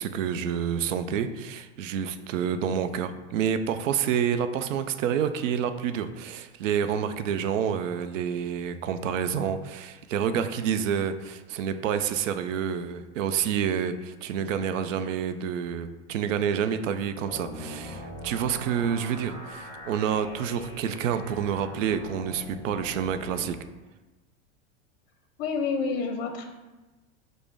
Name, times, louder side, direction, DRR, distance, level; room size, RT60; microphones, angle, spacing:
voice 1, 0.0-23.6, right 8 dB, 85° right, 10 dB, 0.5 m, -28 dB
sound 1, 17.2-23.5, left 1 dB, 15° left, 1.4 m, -42 dB
voice 2, 25.4-26.5, left 5 dB, 60° left, 5 dB, 0.7 m, -28 dB
5.2 x 2.1 x 4.7 m, 1.1 s
supercardioid pair, 125°, 37 cm